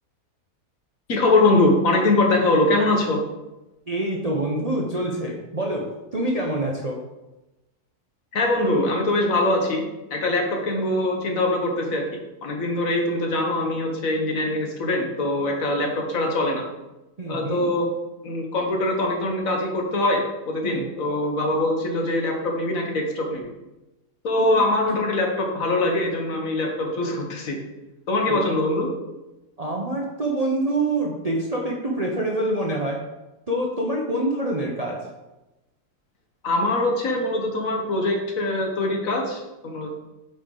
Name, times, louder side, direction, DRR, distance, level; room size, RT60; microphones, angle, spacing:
voice 1, 1.1-3.2 8.3-9.8 10.1-16.6 17.3-17.9 18.2-23.5 24.2-27.6 28.1-28.9 36.4-39.9, left 2 dB, 60° left, 2 dB, 1.5 m, -23 dB
voice 2, 3.9-7.0 17.2-17.7 20.6-20.9 24.4-24.6 28.3-28.4 29.6-33.0 33.5-35.0, right 1 dB, 35° right, -1 dB, 0.7 m, -26 dB
8.4 x 4.9 x 3.9 m, 1.0 s
omnidirectional pair, 1.7 m